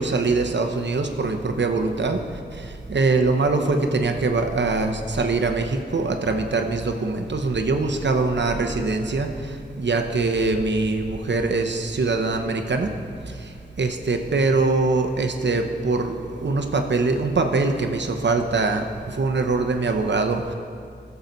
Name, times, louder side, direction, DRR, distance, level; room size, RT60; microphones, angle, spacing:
voice 1, 0.0-2.2 2.6-12.9 13.4-13.5 13.8-20.5, right 3 dB, 75° right, 5 dB, 0.9 m, -23 dB
16.0 x 6.9 x 4.0 m, 2.3 s
wide cardioid pair, 50°, 18 cm